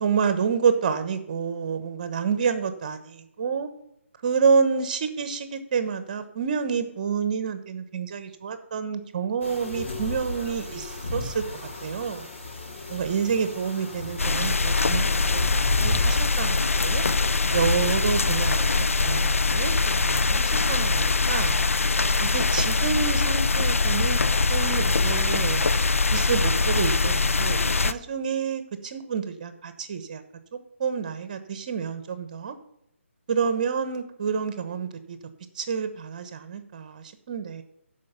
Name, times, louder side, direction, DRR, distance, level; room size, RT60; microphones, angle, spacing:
voice 1, 0.0-3.7 4.2-11.4 11.8-12.3 12.9-17.0 17.5-19.7 20.0-21.8 22.2-24.2 24.5-25.6 26.1-30.2 30.8-32.6 33.3-35.2 35.5-37.6, right 6 dB, 35° right, 11 dB, 1.1 m, -28 dB
sound 1, 9.4-18.8, left 2 dB, 65° left, 3.5 m, -34 dB
sound 2, 14.2-27.9, left 3 dB, 85° left, 0.6 m, -23 dB
12.5 x 5.3 x 5.8 m, 0.76 s
hypercardioid pair, 160°, 7 cm